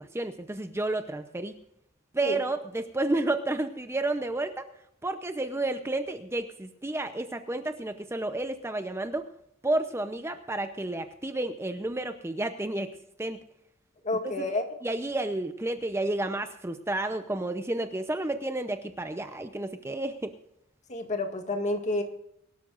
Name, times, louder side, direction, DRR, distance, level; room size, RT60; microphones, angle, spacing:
voice 1, 0.0-1.5 2.1-4.7 5.0-9.3 9.6-12.9 13.2-13.4 14.2-14.4 14.8-20.3, right 2 dB, 15° right, 8 dB, 0.7 m, -31 dB
voice 2, 14.0-14.6 20.9-22.0, left 2 dB, 35° left, 4 dB, 2.0 m, -29 dB
24.0 x 12.5 x 2.5 m, 0.77 s
head